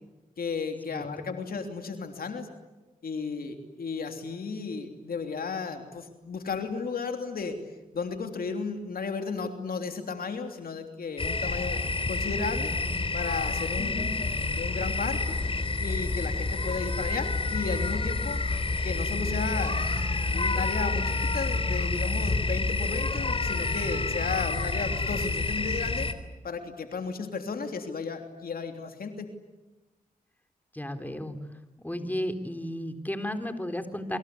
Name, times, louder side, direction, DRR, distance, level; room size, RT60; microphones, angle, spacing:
voice 1, 0.4-2.5 3.0-7.6 7.9-11.8 12.1-12.7 13.1-14.0 14.5-15.4 15.8-18.4 18.8-19.7 20.3-26.1 26.4-29.3, left 5 dB, 75° left, 6 dB, 3.3 m, -34 dB
sound 1, 11.2-26.1, left 3 dB, 35° left, 3.5 m, -29 dB
voice 2, 13.8-14.2 30.7-31.4 31.8-34.2, left 1 dB, 10° left, 8 dB, 4.0 m, -33 dB
27.5 x 25.5 x 8.5 m, 1.1 s
cardioid pair, 45°, 15 cm